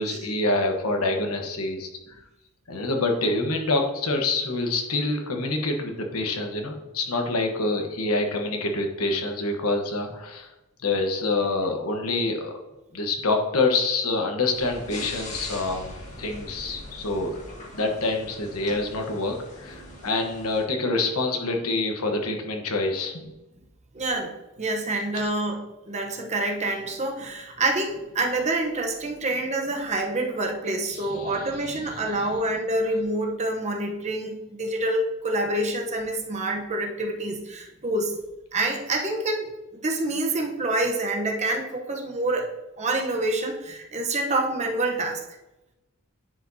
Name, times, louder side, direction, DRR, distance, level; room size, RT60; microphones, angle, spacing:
voice 1, 0.0-1.9 2.7-10.5 10.8-12.5 12.9-17.4 17.7-23.3 31.1-31.3, left 2 dB, 80° left, 3 dB, 1.2 m, -26 dB
sound 1, 14.5-20.6, left 1 dB, 35° left, 1.5 m, -41 dB
voice 2, 23.9-38.2 38.5-42.5 42.8-45.2, right 2 dB, 30° right, 2 dB, 0.9 m, -27 dB
10.0 x 5.0 x 2.8 m, 0.99 s
head